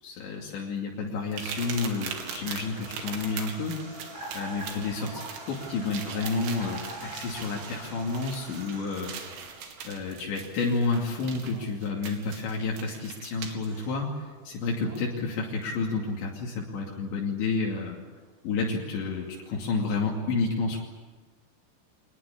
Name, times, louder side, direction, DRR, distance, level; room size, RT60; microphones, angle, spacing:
voice 1, 0.0-3.8 4.3-9.1 9.8-18.0 18.4-20.8, left 4 dB, 75° left, -2 dB, 4.9 m, -30 dB
sound 1, 1.3-13.7 15.0-15.1 15.6-15.8, right 7 dB, 90° right, 4.8 m, -41 dB
sound 2, 1.4-10.3 10.8-12.0 12.5-12.7 13.5-16.5 17.0-17.6 17.9-19.5, right 2 dB, 70° right, 8.3 m, -48 dB
sound 3, 4.1-8.4, right 1 dB, 10° right, 6.1 m, -43 dB
25.5 x 20.0 x 8.8 m, 1.3 s
omnidirectional pair, 5.3 m